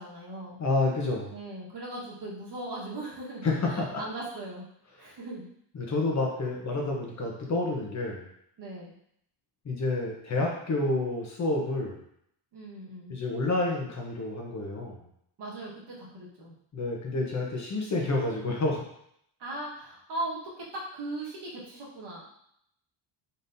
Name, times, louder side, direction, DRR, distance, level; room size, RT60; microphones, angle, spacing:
voice 1, 0.0-0.6 1.3-4.6 5.0-5.5 8.6-8.9 12.5-13.1 15.4-16.5 19.4-22.2, right 1 dB, 55° right, -4 dB, 1.5 m, -38 dB
voice 2, 0.6-1.3 3.4-4.0 5.7-8.3 9.6-12.0 13.1-15.0 16.7-18.8, left 2 dB, 35° left, -1 dB, 1.0 m, -29 dB
4.1 x 3.6 x 2.7 m, 0.71 s
cardioid pair, 105°, 50 cm